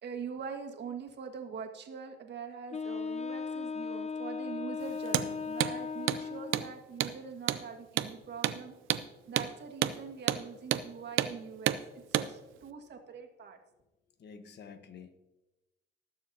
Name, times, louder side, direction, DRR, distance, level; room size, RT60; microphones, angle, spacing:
voice 1, 0.0-8.7 9.3-13.6, right 6 dB, 60° right, 3 dB, 1.7 m, -43 dB
Wind instrument woodwind instrument, 2.7-6.8, left 5 dB, 35° left, 0.7 m, -37 dB
Hammer, 5.0-5.3 5.6-5.7 6.1-6.2 6.5-6.7 7.0-7.1 7.5-7.6 8.0-8.1 8.4-8.6 8.9-9.0 9.4-9.5 9.8-10.0 10.3-10.4 10.7-10.9 11.2-11.3 11.7-11.8 12.1-12.3, right 13 dB, 85° right, 0.6 m, -29 dB
voice 2, 14.2-15.1, left 6 dB, 60° left, 8 dB, 1.2 m, -49 dB
20.0 x 7.0 x 2.8 m, 1.0 s
cardioid pair, 90°, 20 cm